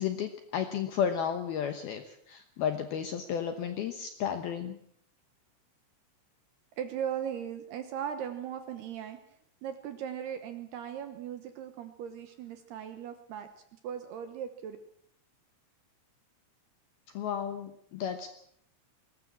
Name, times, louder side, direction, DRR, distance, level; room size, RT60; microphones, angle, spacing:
voice 1, 0.0-4.8 17.1-18.3, left 8 dB, 70° left, 7 dB, 2.4 m, -33 dB
voice 2, 6.8-9.2 9.6-14.8, right 9 dB, 70° right, 8 dB, 2.7 m, -38 dB
21.5 x 19.0 x 7.4 m, 0.67 s
omnidirectional pair, 5.8 m